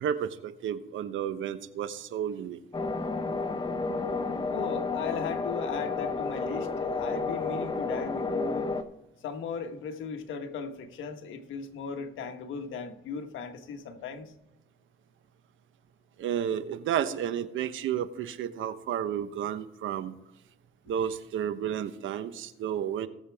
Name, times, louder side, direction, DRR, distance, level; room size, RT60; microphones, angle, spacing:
voice 1, 0.0-2.6 16.2-20.1 20.9-23.1, right 9 dB, 80° right, 12 dB, 1.0 m, -32 dB
sound 1, 2.7-8.8, left 3 dB, 25° left, 1.2 m, -31 dB
voice 2, 4.5-8.7 9.2-14.3, left 6 dB, 80° left, 6 dB, 1.5 m, -37 dB
19.5 x 7.4 x 3.5 m, 0.91 s
cardioid pair, 90°, 20 cm